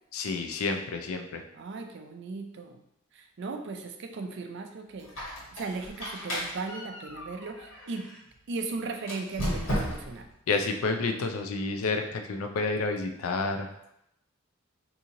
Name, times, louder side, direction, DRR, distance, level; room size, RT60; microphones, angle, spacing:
voice 1, 0.1-1.4 10.5-13.7, left 3 dB, 80° left, 5 dB, 0.4 m, -29 dB
voice 2, 1.5-2.7 3.1-5.1 5.5-8.1 8.5-10.3, right 3 dB, 55° right, 5 dB, 0.4 m, -37 dB
Squeak, 5.0-8.2 9.0-10.3, equal, 65° left, 1.4 m, -35 dB
2.9 x 2.7 x 3.6 m, 0.81 s
head